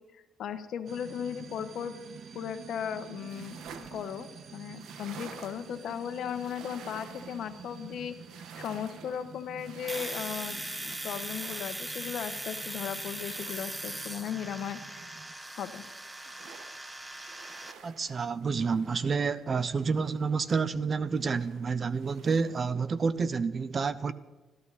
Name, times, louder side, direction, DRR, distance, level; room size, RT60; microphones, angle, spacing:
voice 1, 0.4-1.9 2.3-3.6 3.9-8.2 8.5-15.2 15.6-15.8, left 8 dB, 70° left, 1.3 m, -37 dB
sound 1, 0.9-15.3, right 6 dB, 55° right, 1.0 m, -49 dB
sound 2, 3.0-15.2 15.5-20.9 21.1-22.7, right 6 dB, 80° right, 1.4 m, -52 dB
Domestic sounds home sounds, 9.9-17.7, right 1 dB, 15° right, 1.2 m, -39 dB
voice 2, 17.8-24.1, right 5 dB, 40° right, 0.8 m, -29 dB
21.0 x 14.0 x 4.2 m
cardioid pair, 90°, 0 cm